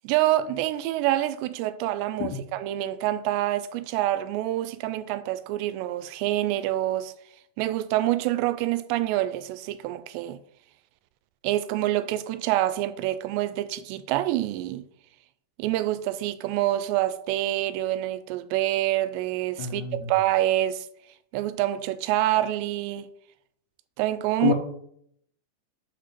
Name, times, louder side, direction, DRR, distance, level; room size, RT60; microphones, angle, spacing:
voice 1, 0.0-7.1 7.6-10.4 11.4-14.9 15.6-20.9 21.3-23.1 24.0-24.5, right 14 dB, 90° right, 2.8 m, -26 dB
voice 2, 19.6-20.1 24.4-24.5, left 8 dB, 75° left, 3.1 m, -27 dB
6.7 x 5.1 x 5.8 m
omnidirectional pair, 4.9 m